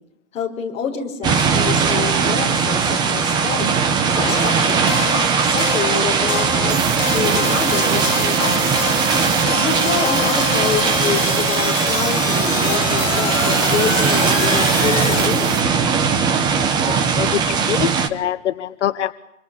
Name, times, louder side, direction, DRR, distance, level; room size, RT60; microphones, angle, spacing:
voice 1, 0.3-3.8 4.3-8.8 9.6-15.5, left 6 dB, 15° left, -2 dB, 5.1 m, -27 dB
sound 1, 1.2-18.1, right 5 dB, 10° right, 1.0 m, -19 dB
sound 2, 4.2-15.3, left 10 dB, 80° left, 1.6 m, -27 dB
sound 3, 6.7-15.6, right 7 dB, 85° right, 3.3 m, -30 dB
voice 2, 16.9-19.1, left 11 dB, 65° left, 11 dB, 1.1 m, -24 dB
28.0 x 25.0 x 7.1 m, 0.83 s
hypercardioid pair, 170°, 38 cm